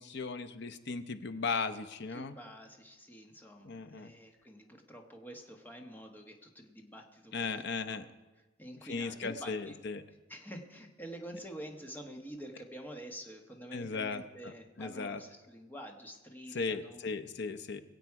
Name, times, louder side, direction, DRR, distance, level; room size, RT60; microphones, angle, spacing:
voice 1, 0.0-2.4 3.6-4.1 7.3-8.0 8.8-10.0 13.7-15.2 16.5-17.8, left 4 dB, 55° left, 11 dB, 0.8 m, -37 dB
voice 2, 2.1-8.0 8.6-9.8 10.3-17.1, equal, 10° left, 2 dB, 1.3 m, -48 dB
22.5 x 8.1 x 4.8 m, 1.1 s
head